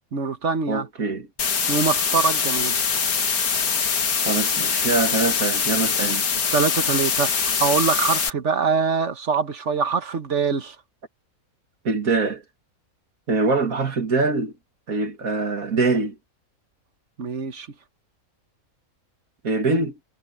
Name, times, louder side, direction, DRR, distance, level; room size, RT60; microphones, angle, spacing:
voice 1, 0.1-0.9 1.7-2.8 6.5-10.8 17.2-17.7, right 5 dB, 55° right, 1.6 m, -24 dB
voice 2, 0.7-1.3 4.2-6.3 11.8-12.4 13.3-14.5 14.9-16.2 19.4-20.0, right 3 dB, 75° right, 2.7 m, -23 dB
sound 1, 1.4-8.3, left 6 dB, 85° left, 2.1 m, -23 dB
omnidirectional pair, 1.5 m